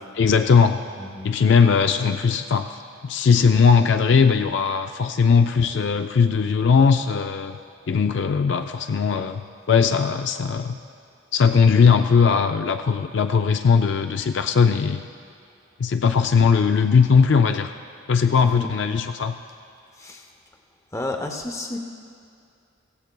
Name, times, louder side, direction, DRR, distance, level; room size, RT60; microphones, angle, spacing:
voice 1, 0.2-0.8 1.2-7.6 7.9-9.4 9.7-10.8 11.3-15.0 15.8-17.7 18.1-19.3, left 5 dB, 55° left, 7 dB, 0.3 m, -19 dB
voice 2, 1.0-1.3 18.4-18.7 20.0-20.2 20.9-21.8, left 2 dB, 15° left, 3 dB, 0.6 m, -31 dB
16.0 x 15.5 x 2.2 m, 2.4 s
head